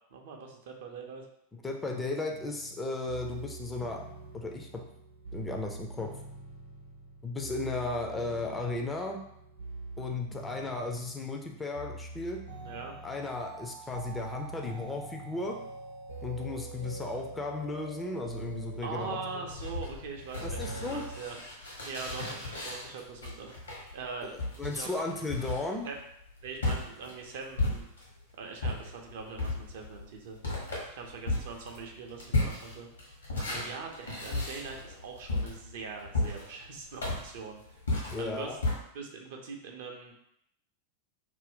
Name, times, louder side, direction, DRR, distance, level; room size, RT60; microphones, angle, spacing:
voice 1, 0.1-1.3 12.6-12.9 18.8-21.4 21.8-23.5 23.9-24.3 24.6-24.9 25.8-26.0 26.4-27.8 28.4-30.4 30.9-32.9 33.4-37.6 38.2-38.6 38.9-40.1, right 5 dB, 55° right, 2 dB, 0.5 m, -42 dB
voice 2, 1.5-4.0 4.3-4.8 5.3-6.1 7.2-9.2 10.0-12.4 13.0-15.6 16.2-19.2 20.4-21.0 24.6-25.9 38.1-38.6, left 3 dB, 10° left, 1 dB, 0.4 m, -35 dB
sound 1, 2.3-21.2, right 3 dB, 85° right, 0.8 m, -44 dB
sound 2, 19.5-28.2 28.6-38.7, left 2 dB, 75° left, 1.0 m, -35 dB
2.5 x 2.1 x 3.5 m, 0.75 s
figure-of-eight pair, 90°, 0 cm